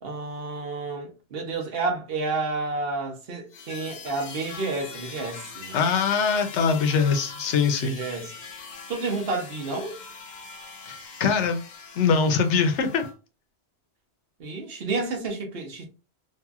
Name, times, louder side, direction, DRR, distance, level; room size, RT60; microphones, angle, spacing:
voice 1, 0.0-6.0 7.8-8.3 8.9-10.0 14.4-15.9, right 3 dB, 60° right, 0.9 m, -30 dB
sound 1, 3.5-13.1, left 4 dB, 50° left, 0.6 m, -42 dB
voice 2, 5.7-8.0 10.9-11.6 12.0-13.1, left 5 dB, 85° left, 0.9 m, -23 dB
2.9 x 2.6 x 2.3 m
omnidirectional pair, 1.2 m